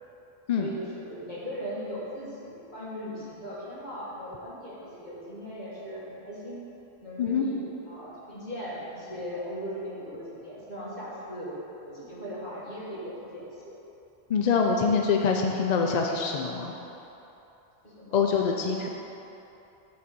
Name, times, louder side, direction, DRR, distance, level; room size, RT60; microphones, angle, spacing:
voice 1, 0.6-6.6 7.0-11.5 11.8-13.8 17.8-18.2 18.7-18.9, equal, 40° left, -9 dB, 2.0 m, -38 dB
voice 2, 14.3-16.7 18.1-18.9, left 5 dB, 55° left, 1 dB, 0.4 m, -25 dB
8.6 x 3.8 x 6.1 m, 3.0 s
omnidirectional pair, 1.2 m